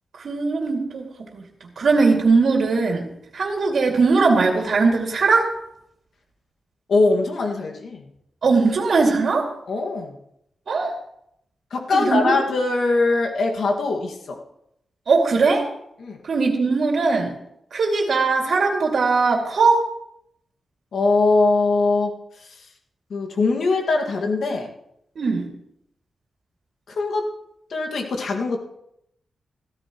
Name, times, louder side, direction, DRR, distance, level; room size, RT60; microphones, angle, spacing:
voice 1, 0.2-1.4 1.8-3.1 3.3-5.5 8.4-9.5 10.7-11.0 11.9-12.4 15.1-15.7 16.2-17.3 17.7-19.9 25.2-25.5, right 4 dB, 65° right, 0 dB, 2.3 m, -20 dB
voice 2, 6.9-8.1 9.7-10.1 11.7-14.4 16.0-16.2 20.9-22.1 22.4-22.7 23.1-24.7 26.9-27.2 27.7-28.6, left 3 dB, 75° left, 1 dB, 1.9 m, -21 dB
16.0 x 13.5 x 3.1 m, 0.76 s
wide cardioid pair, 140°, 0 cm